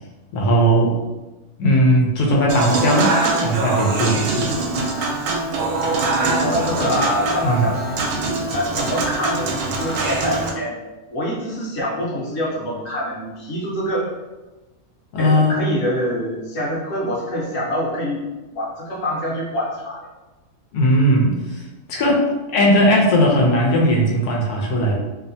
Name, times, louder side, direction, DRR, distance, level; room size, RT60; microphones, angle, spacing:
voice 1, 0.3-1.0 1.6-3.2 3.4-4.5 7.4-7.7 15.1-15.6 20.7-22.2 22.5-24.9, equal, 90° left, -1 dB, 1.1 m, -17 dB
Human voice / Acoustic guitar / Piano, 2.5-10.5, right 3 dB, 80° right, 1.0 m, -23 dB
voice 2, 6.2-7.9 8.5-10.8 11.1-14.1 15.2-18.2 18.5-20.1, equal, 55° left, -5 dB, 1.0 m, -25 dB
2.8 x 2.1 x 2.6 m, 1.1 s
omnidirectional pair, 1.6 m